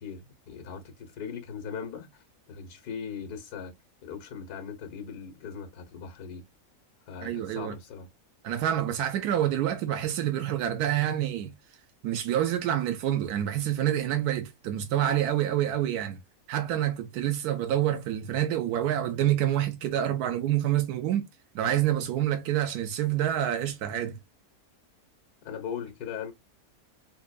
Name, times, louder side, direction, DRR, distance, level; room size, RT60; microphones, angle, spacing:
voice 1, 0.0-3.7 4.0-6.5 7.1-8.1 25.4-26.3, left 7 dB, 90° left, 1.5 m, -39 dB
voice 2, 7.2-7.7 8.4-11.5 12.0-16.2 16.5-21.2 21.5-24.2, right 11 dB, 85° right, 1.2 m, -27 dB
5.4 x 2.2 x 2.4 m
omnidirectional pair, 1.6 m